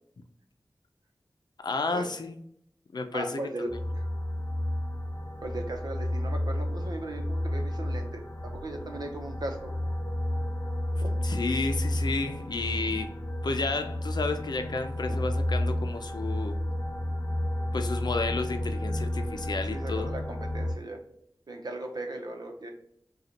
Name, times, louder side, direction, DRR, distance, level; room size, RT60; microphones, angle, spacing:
voice 1, 1.6-2.4 2.9-3.4 11.2-13.1 13.4-16.6 17.7-20.1, left 3 dB, 75° left, 7 dB, 0.5 m, -31 dB
voice 2, 3.1-3.7 3.9-4.0 5.4-9.7 10.9-11.1 15.1-15.2 19.7-21.0 21.5-22.7, right 2 dB, 65° right, 4 dB, 0.9 m, -38 dB
sound 1, 3.7-20.7, left 1 dB, 40° left, 1.0 m, -31 dB
5.0 x 2.4 x 2.9 m, 0.71 s
wide cardioid pair, 55°, 7 cm